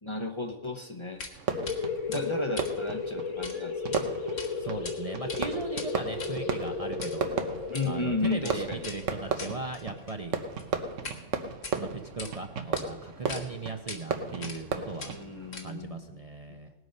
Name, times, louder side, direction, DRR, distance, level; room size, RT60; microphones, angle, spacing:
voice 1, 0.0-1.2 2.1-4.0 7.7-8.9 15.0-16.2 16.5-16.6, left 2 dB, 25° left, 3 dB, 0.9 m, -34 dB
sound 1, 1.2-1.4 1.7-1.8 2.1-3.6 3.8-4.0 4.4-4.9 5.2-11.2 11.5-12.3 12.8-12.9 13.3-13.4 13.9-14.0 14.4-14.7 15.0-15.9, left 3 dB, 60° left, 1.7 m, -42 dB
Fireworks, 1.3-15.6, right 5 dB, 80° right, 1.4 m, -36 dB
sound 2, 1.5-10.9, left 5 dB, 90° left, 1.5 m, -35 dB
voice 2, 4.6-7.3 7.8-10.3 11.7-15.1 15.6-16.7, right 3 dB, 35° right, 5 dB, 0.8 m, -38 dB
19.0 x 8.0 x 5.4 m, 1.1 s
omnidirectional pair, 1.3 m